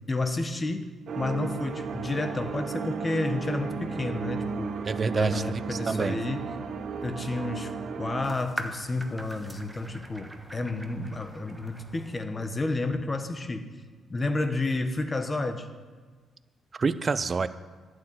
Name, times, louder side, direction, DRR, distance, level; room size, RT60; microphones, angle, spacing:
voice 1, 0.1-0.9 1.1-4.8 5.1-6.5 7.0-13.7 14.1-15.7, left 2 dB, 25° left, 8 dB, 1.2 m, -31 dB
sound 1, 1.1-8.3, right 5 dB, 60° right, 1.0 m, -34 dB
voice 2, 4.9-6.2 16.8-17.5, right 4 dB, 35° right, 13 dB, 0.6 m, -27 dB
sound 2, 8.2-12.2, right 1 dB, 10° right, 1.2 m, -42 dB
11.5 x 6.7 x 8.9 m, 1.4 s
cardioid pair, 90°, 0 cm